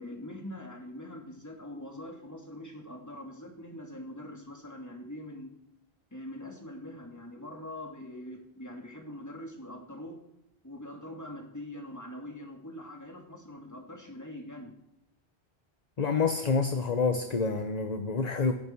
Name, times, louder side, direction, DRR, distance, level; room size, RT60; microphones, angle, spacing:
voice 1, 0.0-5.5 6.1-10.2 10.6-14.7, left 1 dB, 15° left, 2.7 m, -43 dB
voice 2, 16.0-18.5, left 4 dB, 40° left, 1.1 m, -27 dB
26.5 x 11.0 x 4.7 m
omnidirectional pair, 1.1 m